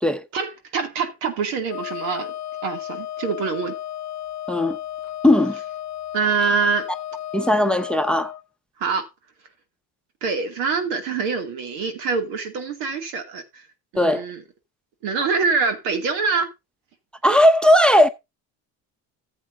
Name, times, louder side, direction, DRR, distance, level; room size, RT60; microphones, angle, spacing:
voice 1, 0.3-2.3 2.6-3.8 6.1-6.9 8.8-9.1 10.2-13.6 13.9-14.4 15.0-16.5, right 5 dB, 85° right, 2.7 m, -25 dB
Wind instrument woodwind instrument, 1.7-8.4, left 12 dB, 35° left, 0.6 m, -33 dB
voice 2, 5.2-5.6 7.3-8.3 13.9-14.2 17.2-18.1, left 1 dB, ahead, 0.9 m, -17 dB
14.5 x 8.0 x 2.7 m
supercardioid pair, 95°, 45 cm